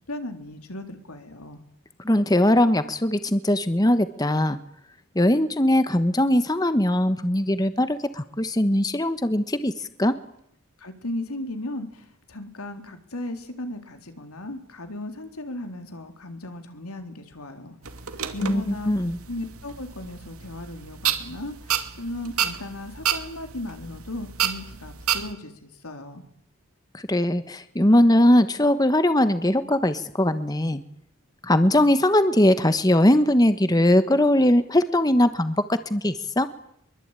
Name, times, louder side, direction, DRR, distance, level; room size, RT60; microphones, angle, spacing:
voice 1, 0.1-1.6 10.8-17.8 18.1-26.3, left 1 dB, 90° left, 7 dB, 3.6 m, -36 dB
voice 2, 2.0-4.6 5.1-10.1 18.4-19.2 26.9-30.8 31.4-36.5, left 1 dB, 15° left, 11 dB, 1.1 m, -20 dB
sound 1, 17.8-25.3, right 9 dB, 85° right, 2.4 m, -31 dB
24.0 x 23.0 x 9.0 m, 0.72 s
head